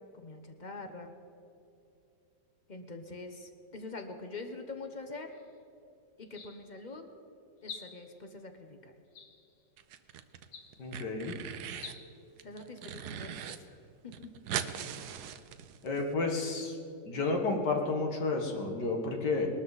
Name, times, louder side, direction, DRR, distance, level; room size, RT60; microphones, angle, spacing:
voice 1, 0.1-1.1 2.7-5.4 6.2-7.1 7.6-8.9 12.4-13.8 14.0-14.3, left 3 dB, 40° left, 6 dB, 0.7 m, -44 dB
sound 1, 5.3-5.6 6.2-6.9 7.6-8.2 9.1-9.7 10.4-11.0 11.7-12.0, left 5 dB, 85° left, 2.1 m, -48 dB
sound 2, 9.8-10.5 10.7-12.0 12.4-13.6 13.8-13.9 14.1-16.0, right 9 dB, 65° right, 1.1 m, -40 dB
voice 2, 10.8-11.4 15.8-16.8 17.1-19.5, left 3 dB, 65° left, 2 dB, 2.1 m, -31 dB
21.0 x 13.0 x 4.1 m, 2.7 s
omnidirectional pair, 2.0 m